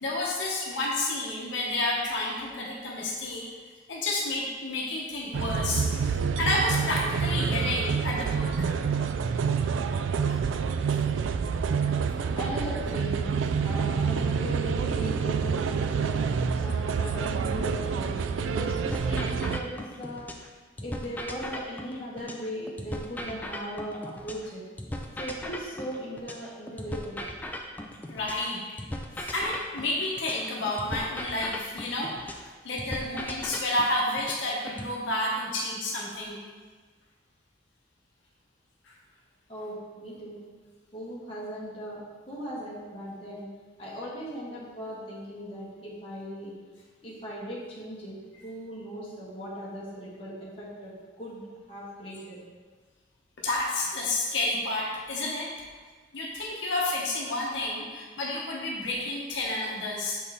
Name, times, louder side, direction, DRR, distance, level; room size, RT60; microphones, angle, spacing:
voice 1, 0.0-3.4 3.9-8.7 10.3-10.4 10.9-11.0 28.1-28.6 29.1-36.4 38.8-38.9 53.4-55.5 56.1-60.2, left 2 dB, 80° left, -3 dB, 0.9 m, -30 dB
sound 1, 5.3-19.6, right 6 dB, 85° right, 0.3 m, -27 dB
voice 2, 12.4-13.3 13.6-16.2 16.6-20.2 20.8-24.6 25.2-27.3 39.5-40.4 40.9-43.5 43.8-46.5 47.0-51.4 51.7-52.4, equal, 30° left, -7 dB, 1.4 m, -38 dB
sound 2, 18.9-20.5 20.8-24.5 24.8-28.5 28.8-32.5 32.8-34.9, left 1 dB, 10° left, 0.3 m, -38 dB
6.4 x 4.2 x 3.5 m, 1.5 s
head